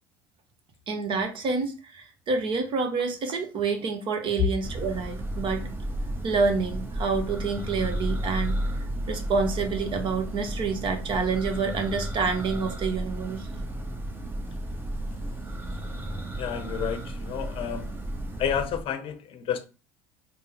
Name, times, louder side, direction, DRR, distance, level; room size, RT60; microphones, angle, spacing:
voice 1, 0.9-5.6 6.1-8.6 9.1-13.4, right 4 dB, 50° right, 0.9 m, -28 dB
Church bell, 4.6-18.9, right 1 dB, 20° right, 0.9 m, -33 dB
voice 2, 16.3-17.9 18.4-19.6, left 9 dB, 50° left, 0.7 m, -30 dB
3.7 x 2.1 x 4.1 m
hypercardioid pair, 75°, 11 cm